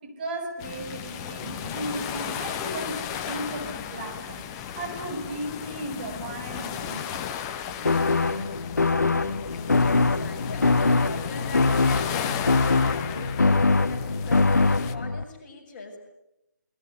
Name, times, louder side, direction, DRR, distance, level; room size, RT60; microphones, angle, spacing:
voice 1, 0.0-4.4 4.7-7.3 7.7-8.0, right 1 dB, 30° right, 1 dB, 5.6 m, -35 dB
sound 1, 0.6-14.9, left 8 dB, 15° left, 0.9 m, -35 dB
sound 2, 7.9-15.2, left 3 dB, 60° left, 1.1 m, -23 dB
voice 2, 9.3-16.0, left 3 dB, 30° left, 0 dB, 6.8 m, -41 dB
28.5 x 22.0 x 8.3 m, 0.89 s
figure-of-eight pair, 145°, 10 cm